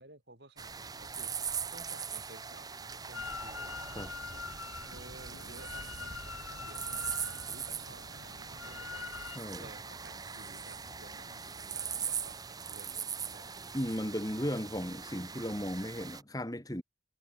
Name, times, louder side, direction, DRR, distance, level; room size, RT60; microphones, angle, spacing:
voice 1, 0.0-3.7 4.8-13.6, right 2 dB, 55° right, 5.1 m, -55 dB
sound 1, 0.6-16.2, right 6 dB, 20° right, 0.9 m, -41 dB
Drill, 3.1-9.4, left 5 dB, 85° left, 3.4 m, -44 dB
sound 2, 6.5-12.1, left 1 dB, 50° left, 3.8 m, -58 dB
voice 2, 9.4-9.7 13.7-16.8, equal, 20° left, 2.7 m, -36 dB
head